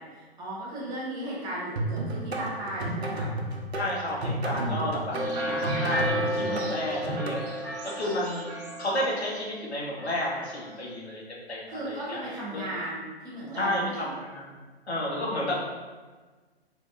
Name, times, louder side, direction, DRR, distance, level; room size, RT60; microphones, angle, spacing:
voice 1, 0.0-3.3 4.5-4.9 5.4-5.6 6.4-6.8 11.7-14.2, right 1 dB, 15° right, -8 dB, 0.9 m, -36 dB
sound 1, 1.8-7.4, right 1 dB, 90° right, 0.7 m, -32 dB
voice 2, 3.7-7.6 7.8-8.5 8.8-12.2 12.5-12.6 13.5-14.5 14.9-15.6, left 1 dB, 85° left, -3 dB, 1.2 m, -31 dB
sound 2, 5.1-9.7 10.0-10.7, equal, 35° right, 1.1 m, -33 dB
3.9 x 3.2 x 2.5 m, 1.3 s
figure-of-eight pair, 130°, 32 cm